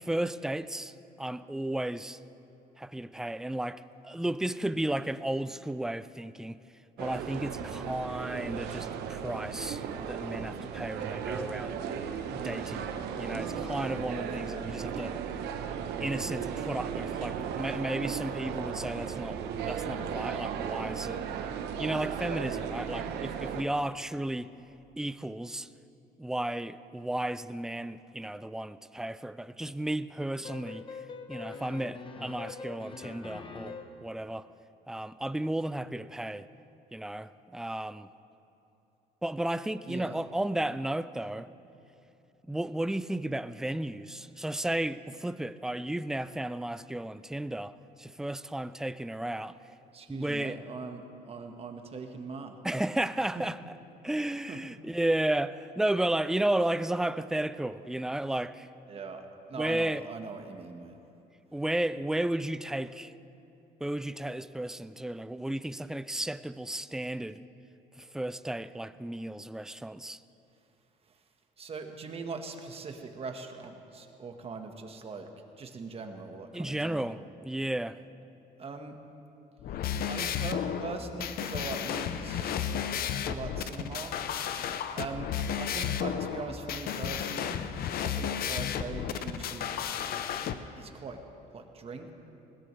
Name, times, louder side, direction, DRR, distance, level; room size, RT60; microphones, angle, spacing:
voice 1, 0.0-2.2 2.8-6.6 7.0-11.8 12.3-12.9 13.2-15.2 16.0-21.2 21.8-24.5 25.0-25.7 26.2-30.9 31.3-34.5 34.9-36.5 36.9-38.1 39.2-41.5 42.5-49.6 50.1-50.6 52.6-53.7 54.0-58.7 59.6-60.0 61.5-63.1 63.8-67.4 68.0-70.2 76.5-78.0, right 1 dB, 5° right, 0.3 m, -33 dB
sound 1, 7.0-23.6, right 7 dB, 80° right, 1.0 m, -36 dB
sound 2, 30.4-34.1, left 4 dB, 30° left, 1.0 m, -43 dB
voice 2, 39.9-40.2 49.9-52.6 53.3-53.4 54.5-54.6 58.9-61.0 71.1-71.2 71.6-75.3 75.6-77.2 78.6-79.0 80.0-84.3 84.9-87.6 88.0-89.7 90.8-91.2 91.5-92.1, right 4 dB, 35° right, 1.4 m, -41 dB
sound 3, 79.6-90.5, left 8 dB, 65° left, 0.7 m, -33 dB
20.5 x 17.0 x 3.3 m
cardioid pair, 110°, 17 cm